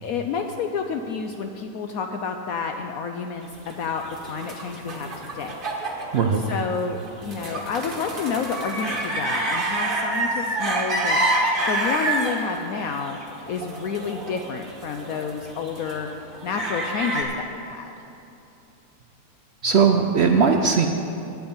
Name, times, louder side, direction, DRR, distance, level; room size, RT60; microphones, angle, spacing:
voice 1, 0.0-6.1 6.5-13.2 13.5-16.1 16.4-18.0, left 5 dB, 70° left, 5 dB, 0.9 m, -30 dB
sound 1, 3.7-17.2, right 1 dB, 35° right, 1.5 m, -28 dB
voice 2, 6.1-6.4 19.6-20.9, right 6 dB, 75° right, 4 dB, 0.6 m, -18 dB
9.5 x 9.0 x 7.2 m, 2.8 s
omnidirectional pair, 1.8 m